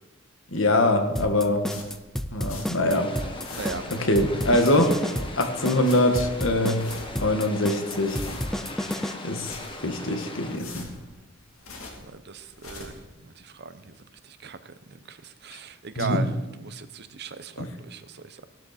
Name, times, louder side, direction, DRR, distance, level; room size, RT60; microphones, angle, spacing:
voice 1, 0.5-1.7 2.3-3.2 3.5-3.6 3.9-5.0 5.4-8.2 9.2-9.6 9.8-10.9 16.0-16.2 17.6-17.7, left 1 dB, 65° left, 6 dB, 1.7 m, -23 dB
sound 1, 1.2-9.1, equal, ahead, 0.5 m, -31 dB
sound 2, 1.7-3.0 3.2-4.0 4.4-5.2 5.6-6.2 6.6-7.3 7.7-8.7 9.2-10.0 10.4-12.1 12.4-13.1, left 3 dB, 90° left, 2.7 m, -44 dB
sound 3, 2.9-10.6, left 2 dB, 25° left, 1.4 m, -40 dB
voice 2, 3.5-3.9 12.0-14.0 14.2-18.5, right 5 dB, 55° right, 12 dB, 0.8 m, -38 dB
16.0 x 12.5 x 4.3 m, 1.1 s
head